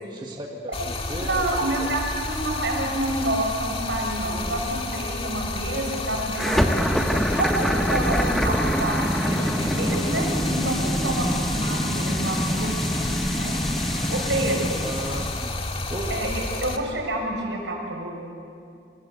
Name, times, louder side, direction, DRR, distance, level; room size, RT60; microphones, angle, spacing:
voice 1, 0.0-1.9 14.8-15.6 15.9-16.2, right 1 dB, 25° right, 0 dB, 1.9 m, -35 dB
Stream, 0.7-16.8, left 2 dB, 30° left, 2.1 m, -31 dB
voice 2, 1.3-12.7 13.3-13.6 14.1-14.7 16.1-16.3 16.6-18.1, right 1 dB, 75° right, 1 dB, 6.8 m, -28 dB
sound 1, 6.4-15.5, equal, ahead, 1.3 m, -25 dB
27.0 x 26.5 x 8.3 m, 2.4 s
head